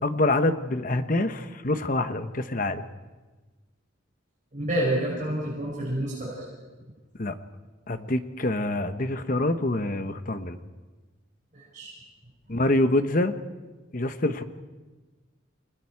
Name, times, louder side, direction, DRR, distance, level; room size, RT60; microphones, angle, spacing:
voice 1, 0.0-2.8 7.2-7.3 7.9-10.6 12.5-13.3 13.9-14.4, left 2 dB, 40° left, 10 dB, 1.0 m, -26 dB
voice 2, 4.5-6.6 11.5-11.9, right 1 dB, 40° right, -5 dB, 6.4 m, -29 dB
29.5 x 19.5 x 4.7 m, 1.3 s
head